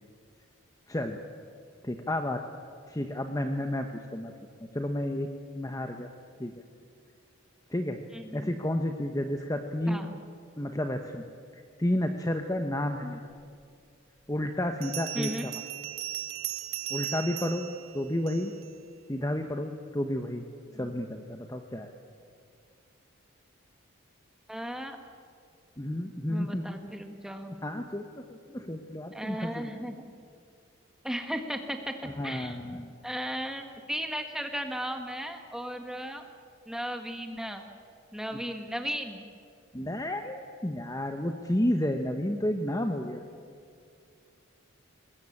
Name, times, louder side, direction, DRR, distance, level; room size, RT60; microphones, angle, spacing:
voice 1, 0.9-1.2 1.8-2.4 2.9-4.3 4.7-5.3 5.5-6.1 6.4-6.5 7.7-8.0 8.3-10.0 10.6-11.2 11.5-13.2 14.3-15.5 16.9-17.7 17.9-18.5 19.1-20.4 20.8-21.9 25.8-26.8 27.6-29.8 32.0-33.0 39.7-43.2, left 1 dB, 15° left, 5 dB, 0.9 m, -31 dB
voice 2, 8.1-8.5 9.9-10.1 15.1-15.5 20.7-20.9 24.5-25.0 26.3-27.5 29.1-30.0 31.0-31.9 32.2-32.6 33.0-36.2 36.6-37.6 38.1-39.2, equal, ahead, 5 dB, 1.7 m, -35 dB
Bell, 13.6-13.7 14.8-18.7, right 14 dB, 80° right, 1.1 m, -37 dB
23.0 x 20.5 x 8.7 m, 2.3 s
head